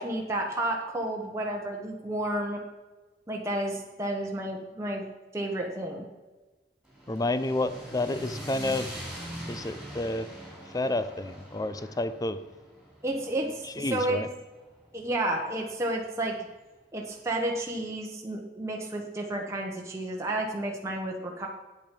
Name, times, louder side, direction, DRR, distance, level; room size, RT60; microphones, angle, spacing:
voice 1, 0.0-2.6 3.3-5.0 5.3-6.0 13.0-14.2 14.9-16.3 16.9-21.5, right 1 dB, 15° right, -1 dB, 1.1 m, -31 dB
sound 1, 6.8-15.1, equal, ahead, 3.7 m, -43 dB
voice 2, 7.1-8.9 9.5-10.3 10.7-12.4 13.8-14.3, left 2 dB, 20° left, 13 dB, 0.5 m, -30 dB
8.8 x 8.6 x 5.3 m, 1.2 s
head